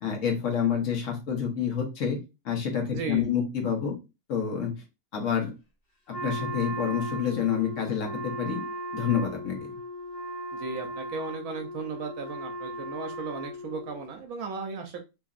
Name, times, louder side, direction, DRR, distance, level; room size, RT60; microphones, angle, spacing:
voice 1, 0.0-2.2 2.4-3.9 4.3-4.7 5.1-5.5 6.1-8.6 8.9-9.7, left 8 dB, 60° left, 2 dB, 1.1 m, -28 dB
voice 2, 2.9-3.2 10.5-15.0, right 4 dB, 75° right, 4 dB, 1.0 m, -36 dB
Wind instrument woodwind instrument, 6.1-14.0, right 1 dB, 85° left, 1.4 m, -37 dB
2.9 x 2.6 x 2.3 m, 0.27 s
omnidirectional pair, 1.6 m